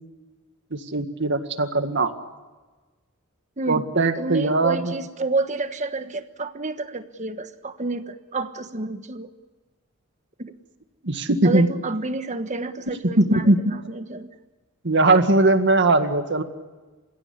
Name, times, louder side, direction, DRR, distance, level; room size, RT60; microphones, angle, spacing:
voice 1, 0.7-2.1 3.7-4.9 11.0-11.7 13.2-13.7 14.8-16.4, right 2 dB, 55° right, 8 dB, 1.9 m, -20 dB
voice 2, 4.2-9.3 10.4-10.5 11.4-14.3, right 3 dB, 35° right, 10 dB, 1.3 m, -29 dB
29.0 x 16.5 x 9.7 m, 1.3 s
head